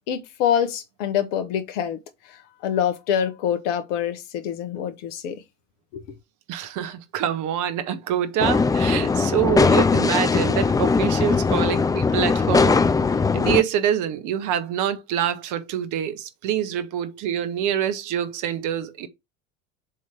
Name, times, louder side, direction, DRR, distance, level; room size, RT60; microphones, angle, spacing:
voice 1, 0.1-2.0 2.3-5.4 5.9-6.0, left 9 dB, 65° left, 1.7 m, -25 dB
voice 2, 6.5-12.8 13.3-19.1, right 10 dB, 50° right, 1.4 m, -26 dB
sound 1, 8.4-13.6, left 4 dB, 10° left, 0.4 m, -20 dB
7.3 x 3.2 x 5.8 m
hypercardioid pair, 80°, 39 cm